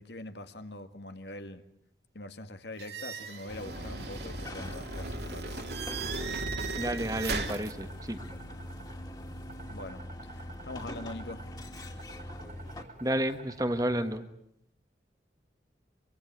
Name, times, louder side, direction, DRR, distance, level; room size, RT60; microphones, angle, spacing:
voice 1, 0.0-1.6 2.1-5.6 9.7-11.4, left 2 dB, 70° left, 9 dB, 1.9 m, -43 dB
sound 1, 2.8-7.7, right 3 dB, 65° right, 3.1 m, -36 dB
sound 2, 3.5-12.8, left 1 dB, 20° left, 2.7 m, -43 dB
sound 3, 6.4-14.2, right 3 dB, 45° right, 3.1 m, -51 dB
voice 2, 6.8-8.2 13.0-14.3, right 1 dB, 20° right, 9 dB, 1.5 m, -31 dB
25.5 x 24.5 x 9.3 m, 0.75 s
head